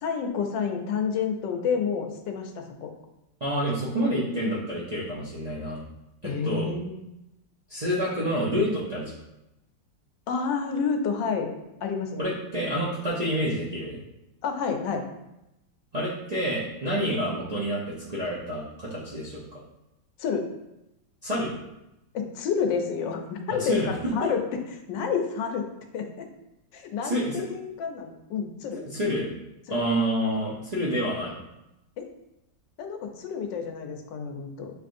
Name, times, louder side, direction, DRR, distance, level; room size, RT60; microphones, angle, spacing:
voice 1, 0.0-2.9 6.2-7.0 10.3-11.5 11.8-12.3 14.4-15.0 20.2-20.5 22.1-24.6 24.9-25.7 25.9-26.3 26.7-28.8 29.7-29.8 32.0-32.1 32.8-34.7, left 6 dB, 85° left, 4 dB, 1.3 m, -29 dB
voice 2, 3.4-5.8 6.2-6.7 7.7-9.1 12.2-14.0 15.9-19.6 21.2-21.5 23.6-24.3 27.0-27.4 28.8-29.2 29.7-31.3, equal, 65° right, -8 dB, 0.4 m, -28 dB
6.2 x 3.3 x 2.5 m, 0.90 s
omnidirectional pair, 1.9 m